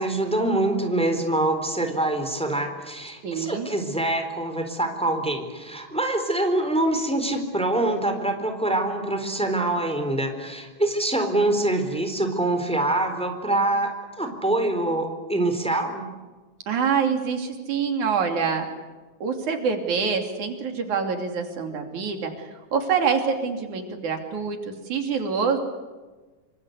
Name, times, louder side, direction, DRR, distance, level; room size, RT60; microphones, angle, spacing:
voice 1, 0.0-16.1, right 1 dB, ahead, 6 dB, 3.8 m, -25 dB
voice 2, 3.2-3.7 16.7-18.7 19.2-25.6, right 6 dB, 85° right, 4 dB, 4.3 m, -26 dB
27.5 x 25.0 x 8.2 m, 1.3 s
omnidirectional pair, 3.3 m